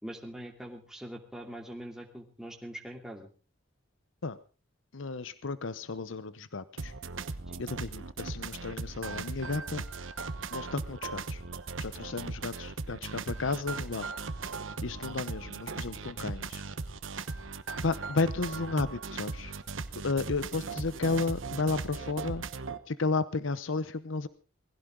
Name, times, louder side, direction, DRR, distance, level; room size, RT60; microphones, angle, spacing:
voice 1, 0.0-3.3 7.5-7.6 12.1-12.2, equal, 5° right, 1 dB, 2.7 m, -43 dB
voice 2, 4.9-6.9 7.6-9.8 10.5-11.4 11.8-14.1 14.8-16.6 17.8-19.5 20.0-22.4 22.9-24.3, left 3 dB, 85° left, 15 dB, 0.8 m, -33 dB
sound 1, 6.8-22.8, right 4 dB, 85° right, 1.1 m, -38 dB
20.5 x 16.0 x 3.8 m, 0.34 s
head